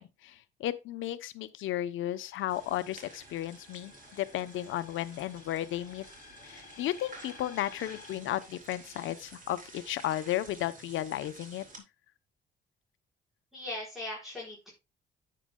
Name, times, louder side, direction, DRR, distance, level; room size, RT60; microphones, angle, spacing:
voice 1, 0.0-6.0 6.4-11.6, left 13 dB, 80° left, 0.8 m, -34 dB
sound 1, 2.1-8.2, left 5 dB, 45° left, 3.8 m, -55 dB
sound 2, 2.5-11.8, right 3 dB, 40° right, 3.8 m, -52 dB
voice 2, 13.5-14.7, left 1 dB, ahead, 4.9 m, -39 dB
9.9 x 8.5 x 2.3 m
cardioid pair, 90°, 20 cm